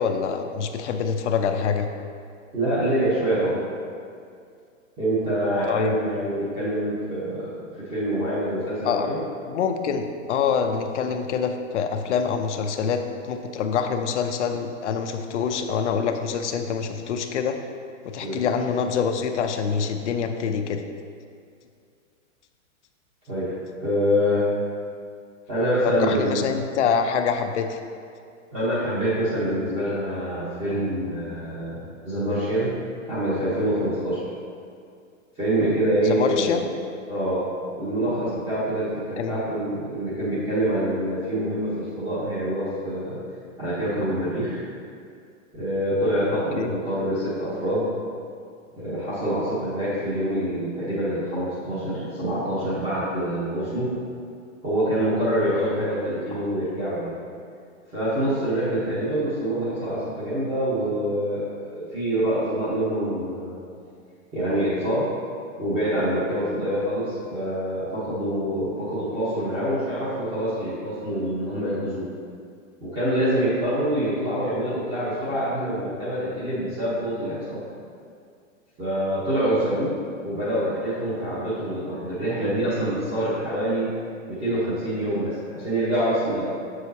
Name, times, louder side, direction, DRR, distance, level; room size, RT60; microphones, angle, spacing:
voice 1, 0.0-1.9 5.7-6.0 8.8-9.1 9.5-17.6 18.0-20.8 25.8-27.8 36.0-36.7 39.2-39.3 46.5-46.7 55.6-55.7, left 6 dB, 60° left, 6 dB, 0.7 m, -25 dB
voice 2, 2.5-3.6 5.0-9.2 18.2-18.4 23.3-24.5 25.5-26.4 28.5-32.7 33.1-34.2 35.4-36.6 37.1-37.4 37.7-43.2 43.6-44.6 45.5-47.8 48.8-53.9 54.6-57.1 57.9-63.6 64.3-65.1 65.6-72.0 72.8-77.6 78.8-79.9 80.2-83.9 84.4-86.5, right 1 dB, 15° right, -12 dB, 1.1 m, -25 dB
7.7 x 6.4 x 2.8 m, 2.3 s
hypercardioid pair, 170°, 41 cm